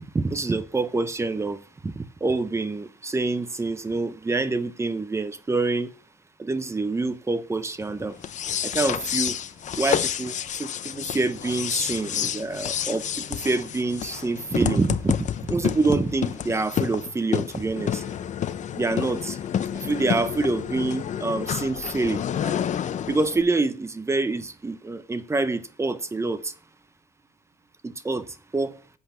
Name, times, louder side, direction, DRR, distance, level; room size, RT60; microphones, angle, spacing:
voice 1, 0.0-5.9 6.4-8.2 8.6-9.4 9.8-18.0 18.7-19.4 19.8-22.6 23.1-26.5 27.8-28.3 28.5-28.8, right 3 dB, 15° right, 0.9 m, -26 dB
sound 1, 8.2-23.4, left 9 dB, 45° left, 0.8 m, -29 dB
8.3 x 7.7 x 4.4 m
cardioid pair, 110°, 17 cm